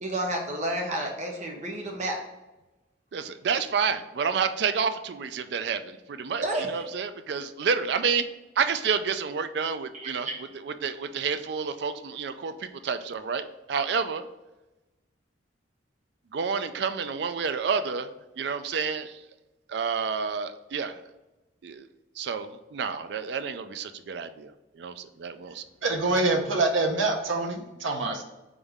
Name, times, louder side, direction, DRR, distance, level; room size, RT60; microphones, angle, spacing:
voice 1, 0.0-2.2 6.4-6.9 9.9-10.4, right 1 dB, 35° right, 1 dB, 0.8 m, -31 dB
voice 2, 3.1-6.4 6.7-8.2 8.6-10.3 10.6-13.4 13.7-14.3 16.3-18.1 18.4-19.1 19.7-21.0 21.6-21.9 22.2-24.5 24.8-25.6, right 6 dB, 60° right, 10 dB, 0.3 m, -29 dB
voice 3, 25.8-28.2, right 2 dB, 80° right, 3 dB, 0.8 m, -25 dB
4.0 x 3.7 x 3.5 m, 1.0 s
head